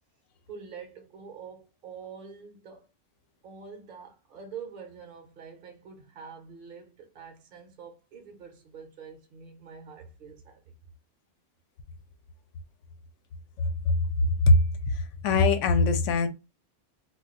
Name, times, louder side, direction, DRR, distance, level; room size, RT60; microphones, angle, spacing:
voice 1, 0.5-2.9 3.4-10.7, right 6 dB, 55° right, 0.7 m, -45 dB
voice 2, 13.6-14.6 14.9-16.3, left 2 dB, 80° left, 0.9 m, -22 dB
2.3 x 2.3 x 3.8 m
omnidirectional pair, 1.2 m